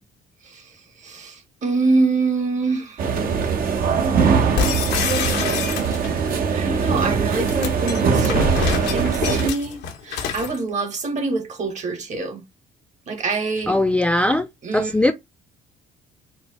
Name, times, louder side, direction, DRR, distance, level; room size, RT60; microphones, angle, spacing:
voice 1, 1.0-3.0 6.5-9.8 10.0-12.4 13.1-13.8 14.6-15.0, right 3 dB, 45° right, 1.3 m, -25 dB
sound 1, 3.0-9.5, right 6 dB, 60° right, 0.9 m, -21 dB
sound 2, 4.6-6.3 7.3-10.6, left 6 dB, 85° left, 1.1 m, -26 dB
voice 2, 13.7-14.5 14.7-15.1, left 1 dB, 5° left, 0.3 m, -19 dB
4.2 x 2.1 x 4.2 m
cardioid pair, 110°, 17 cm